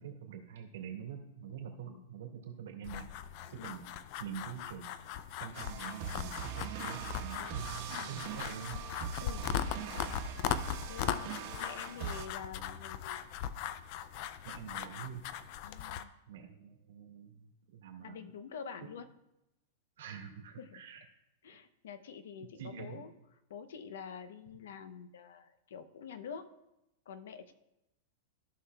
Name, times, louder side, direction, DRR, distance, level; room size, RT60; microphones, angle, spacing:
voice 1, 0.0-3.1 3.5-3.9 4.2-4.9 5.4-8.8 9.6-9.9 14.4-15.3 16.3-18.3 20.0-21.0 21.4-21.6 22.3-23.0, right 8 dB, 85° right, 3 dB, 1.7 m, -46 dB
sound 1, 2.8-16.0, left 10 dB, 35° left, 0.3 m, -39 dB
sound 2, 5.5-12.3, right 8 dB, 45° right, 1.0 m, -42 dB
voice 2, 9.2-10.3 10.9-11.3 11.6-13.2 15.6-16.1 18.0-19.1 20.6-20.8 21.4-23.1 23.5-26.5 27.1-27.5, left 7 dB, 80° left, 11 dB, 0.7 m, -47 dB
14.5 x 5.7 x 2.3 m, 0.89 s
supercardioid pair, 170°, 0 cm